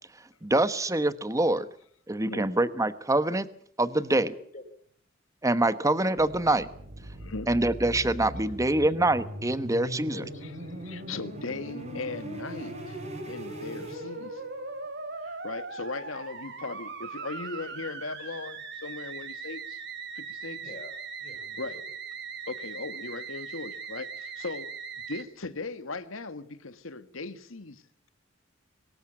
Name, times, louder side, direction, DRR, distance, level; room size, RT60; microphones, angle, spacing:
voice 1, 0.4-1.7 2.1-3.5 3.8-4.3 5.4-6.7 7.5-10.2, right 2 dB, 15° right, 1.2 m, -25 dB
voice 2, 4.2-4.6 8.3-8.6 9.5-10.7 20.6-20.9 21.2-21.8, left 2 dB, 40° left, 6.1 m, -47 dB
Musical instrument, 6.2-25.2, right 3 dB, 60° right, 4.9 m, -40 dB
voice 3, 7.2-7.5 10.4-10.5 10.8-13.0 13.3-14.5 15.2-19.8 20.1-20.6 21.6-21.8 22.5-24.7 25.1-27.8, left 3 dB, 85° left, 1.7 m, -38 dB
sound 1, 8.9-14.8, right 1 dB, 35° right, 6.4 m, -45 dB
24.5 x 13.5 x 8.8 m
head